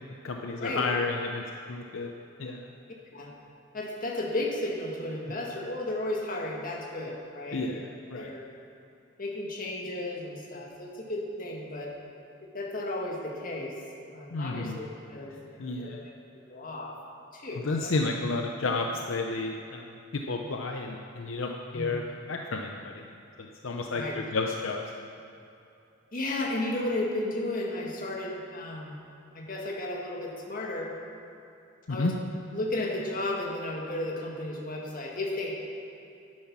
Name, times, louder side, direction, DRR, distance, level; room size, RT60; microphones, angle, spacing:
voice 1, 0.2-2.1 2.4-2.7 7.5-8.3 14.3-14.8 15.6-16.0 17.6-23.0 23.4-24.9 31.9-32.1, left 3 dB, 70° left, 3 dB, 0.6 m, -31 dB
voice 2, 3.7-7.8 8.1-8.5 9.2-11.9 12.5-13.7 14.1-16.1 16.5-16.9 17.3-17.9 21.7-21.9 23.9-24.2 26.1-29.0 29.3-30.9 31.9-32.1 32.5-35.5, left 1 dB, 45° left, -2 dB, 1.8 m, -34 dB
11.0 x 9.5 x 6.0 m, 2.7 s
head